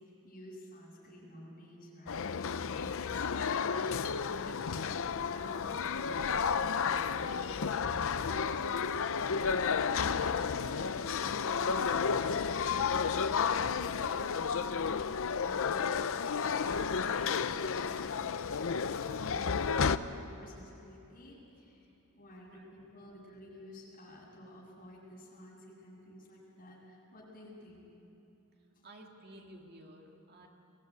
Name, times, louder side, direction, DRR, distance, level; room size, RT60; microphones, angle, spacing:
voice 1, 0.2-8.2 8.5-8.9 9.2-9.8 10.2-14.5 15.4-27.8 28.7-28.9, left 1 dB, 40° left, -5 dB, 7.6 m, -52 dB
sound 1, 2.1-20.0, left 6 dB, 65° left, 0.6 m, -32 dB
voice 2, 28.8-30.5, right 1 dB, 45° right, 1 dB, 2.3 m, -54 dB
22.5 x 17.0 x 9.5 m, 2.9 s
head